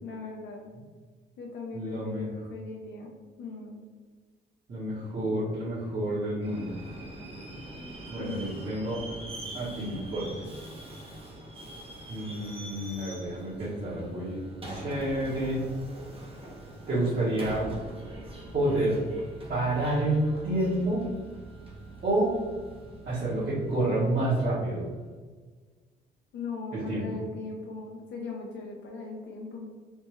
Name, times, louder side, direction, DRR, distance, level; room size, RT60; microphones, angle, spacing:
voice 1, 0.0-0.7 1.4-3.1 3.4-3.8 8.2-8.5 26.3-29.7, left 3 dB, 65° left, -1 dB, 0.6 m, -39 dB
voice 2, 1.7-2.3 4.7-6.8 8.1-9.0 9.5-10.5 12.1-15.6 16.9-17.7 18.5-19.0 19.5-21.1 22.0-22.3 23.0-24.8 26.7-27.0, right 1 dB, 50° right, -9 dB, 1.2 m, -29 dB
Subway metro underground, 6.4-24.9, right 1 dB, 30° right, 0.8 m, -43 dB
3.3 x 2.1 x 3.2 m, 1.5 s
cardioid pair, 90°, 20 cm